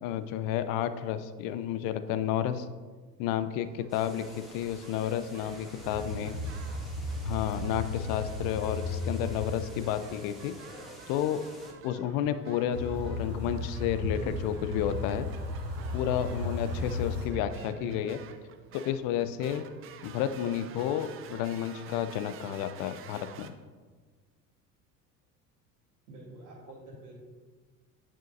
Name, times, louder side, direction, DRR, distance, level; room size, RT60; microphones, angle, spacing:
voice 1, 0.0-2.7 3.2-6.4 7.2-10.6 11.1-11.4 11.8-15.3 15.9-18.2 18.7-19.7 20.0-23.5, left 10 dB, 45° left, 12 dB, 0.5 m, -31 dB
sound 1, 3.6-23.5, right 7 dB, 30° right, 0.5 m, -52 dB
sound 2, 3.9-11.7, equal, ahead, 1.6 m, -50 dB
sound 3, 5.8-9.6 12.7-17.3, left 2 dB, 80° right, 1.3 m, -35 dB
voice 2, 6.0-7.1 12.0-12.3 17.6-18.0 20.6-20.9 26.1-27.2, right 1 dB, 65° right, -8 dB, 1.9 m, -49 dB
8.9 x 6.2 x 2.6 m, 1.5 s
figure-of-eight pair, 70°, 49 cm